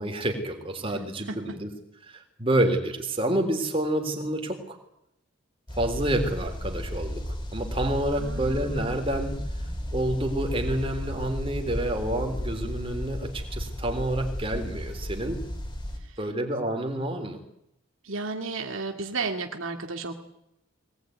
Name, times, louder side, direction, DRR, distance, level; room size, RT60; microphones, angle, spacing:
voice 1, 0.0-1.7 2.0-4.8 5.8-7.2 7.5-9.4 9.9-15.4 16.2-17.4, right 1 dB, 25° right, 4 dB, 3.7 m, -28 dB
sound 1, 5.7-16.0, equal, 20° left, 3.8 m, -34 dB
voice 2, 8.2-8.8 16.0-16.2 18.0-20.1, right 4 dB, 65° right, 4 dB, 2.2 m, -33 dB
22.0 x 19.0 x 9.5 m, 0.80 s
head